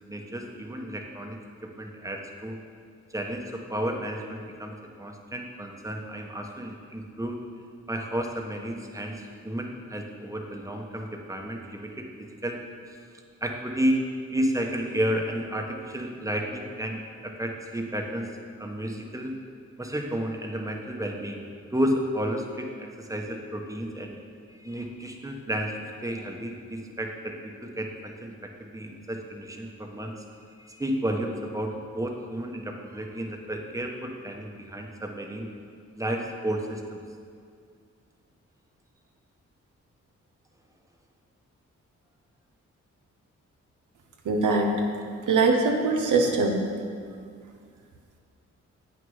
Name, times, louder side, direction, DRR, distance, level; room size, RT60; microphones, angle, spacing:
voice 1, 0.0-2.6 3.1-7.4 7.9-12.6 12.9-13.0 13.4-18.3 18.6-19.3 19.8-21.4 21.7-24.2 24.5-27.3 27.6-30.1 30.6-35.5 36.0-37.0, right 1 dB, 10° right, 1 dB, 1.2 m, -32 dB
voice 2, 44.2-44.7 45.3-46.6, right 3 dB, 85° right, 2 dB, 1.0 m, -22 dB
8.4 x 6.5 x 5.6 m, 2.2 s
cardioid pair, 55°, 30 cm